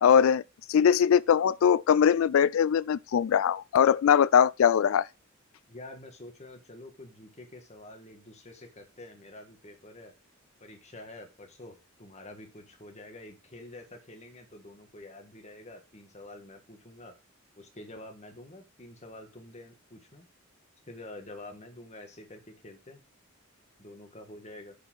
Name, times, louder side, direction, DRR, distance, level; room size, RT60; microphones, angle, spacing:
voice 1, 0.0-0.4 0.7-5.1, left 8 dB, 75° left, 0.3 m, -21 dB
voice 2, 5.7-10.1 10.6-17.1 17.6-20.3 20.9-23.0 23.8-24.7, left 1 dB, 35° left, 1.6 m, -47 dB
6.7 x 4.9 x 6.1 m
head